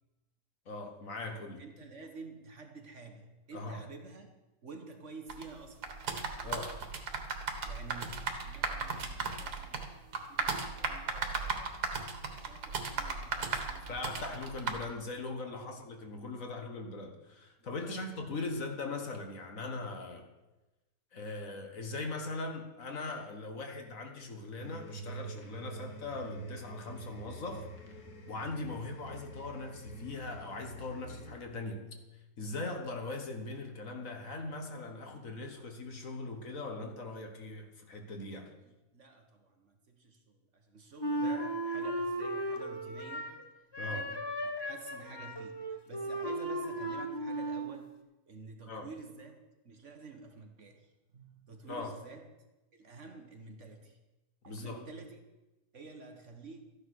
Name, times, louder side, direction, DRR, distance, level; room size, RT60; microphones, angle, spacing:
voice 1, 0.7-1.6 3.5-3.8 6.4-6.8 13.9-20.2 21.1-27.7 28.3-31.8 32.4-38.5 43.8-44.0 48.7-48.9 51.7-51.9 54.5-54.8, left 3 dB, 55° left, 4 dB, 1.9 m, -40 dB
voice 2, 1.6-4.3 4.6-5.9 7.6-10.0 10.3-11.9 12.3-14.5 15.5-15.7 17.6-18.0 28.7-29.0 38.6-44.3 44.6-49.4 49.7-52.3 52.7-54.0 54.4-55.3 55.7-56.6, right 4 dB, 50° right, 4 dB, 1.7 m, -50 dB
sound 1, 5.3-14.8, right 4 dB, 90° right, 2.1 m, -37 dB
sound 2, 24.6-31.3, right 3 dB, 70° left, 2.5 m, -46 dB
Wind instrument woodwind instrument, 41.0-43.4 43.7-47.8, right 1 dB, 15° left, 1.1 m, -36 dB
13.5 x 10.0 x 6.4 m, 1.0 s
omnidirectional pair, 1.7 m